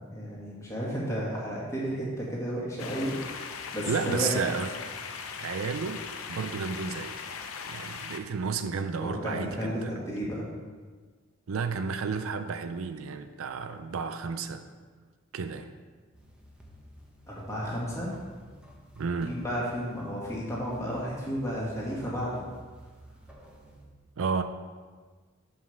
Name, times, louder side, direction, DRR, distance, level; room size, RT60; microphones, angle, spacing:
voice 1, 0.0-4.4 9.0-10.5 17.3-18.1 19.2-22.4, equal, 15° left, -5 dB, 1.8 m, -33 dB
sound 1, 2.8-8.2, left 6 dB, 80° left, 0.6 m, -39 dB
voice 2, 3.9-4.7 5.4-7.2 7.7-9.9 11.5-14.6 15.3-15.7 19.0-19.4 24.2-24.4, right 5 dB, 75° right, 9 dB, 0.4 m, -32 dB
sound 2, 16.1-23.9, right 1 dB, 5° right, 1.0 m, -52 dB
5.6 x 5.1 x 6.4 m, 1.5 s
head